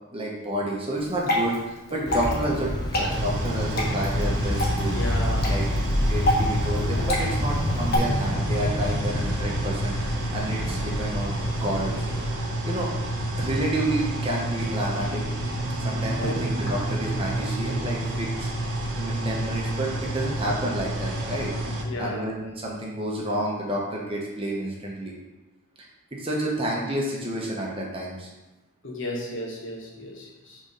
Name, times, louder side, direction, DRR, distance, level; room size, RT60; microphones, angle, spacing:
voice 1, 0.1-5.0 5.4-5.7 6.0-12.0 12.3-12.4 12.6-12.9 13.4-15.2 15.8-18.5 19.0-21.5 22.0-25.1 26.1-28.3, right 1 dB, 25° right, -3 dB, 0.9 m, -30 dB
Water / Drip, 1.0-8.0, left 1 dB, 45° left, 1.1 m, -29 dB
sound 1, 2.1-12.3, left 1 dB, 20° left, 0.5 m, -28 dB
sound 2, 3.1-21.8, right 1 dB, 55° right, 0.9 m, -30 dB
voice 2, 4.9-5.5 16.2-16.4 21.5-22.3 28.8-30.6, equal, 60° left, -2 dB, 1.3 m, -34 dB
4.8 x 3.7 x 5.3 m, 1.1 s
head